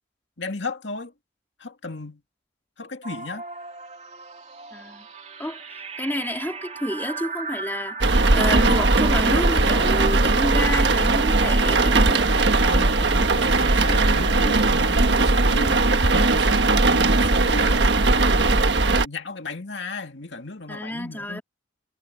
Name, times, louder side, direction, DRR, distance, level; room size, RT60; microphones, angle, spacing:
voice 1, 0.4-1.1 1.6-2.2 2.8-3.4 12.7-15.8 16.1-17.9 18.2-21.4, left 3 dB, 70° left, 2.3 m, -35 dB
sound 1, 3.0-14.5, right 5 dB, 35° right, 2.5 m, -36 dB
voice 2, 4.7-5.0 5.4-12.3 20.7-21.4, left 1 dB, 10° left, 2.6 m, -30 dB
sound 2, 8.0-19.1, right 3 dB, 65° right, 1.4 m, -19 dB
head